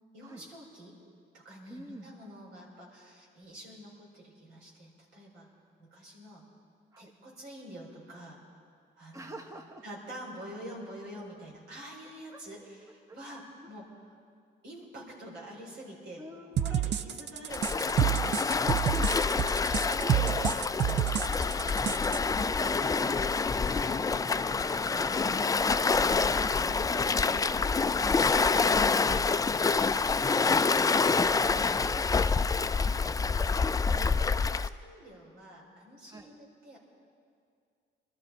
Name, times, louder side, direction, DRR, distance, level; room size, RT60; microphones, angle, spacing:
voice 1, 0.1-1.0 1.3-5.5 5.8-6.5 7.0-8.4 8.9-9.4 9.8-13.9 14.6-16.3 16.6-19.5 19.7-21.8 32.1-33.6 34.4-36.8, right 1 dB, 90° right, -3 dB, 4.4 m, -47 dB
voice 2, 1.7-2.1 6.9-7.1 9.1-9.8 12.3-12.4 13.1-13.2 13.6-13.7 16.2-16.9 18.9-19.4 21.3-31.3 33.9-34.1 36.1-36.3, right 1 dB, 15° right, 3 dB, 1.2 m, -47 dB
sound 1, 16.6-22.2, right 10 dB, 60° right, 0.5 m, -29 dB
Waves surf, 17.5-34.7, left 4 dB, 20° left, 0.3 m, -27 dB
23.0 x 13.0 x 4.4 m, 2.3 s
cardioid pair, 90°, 20 cm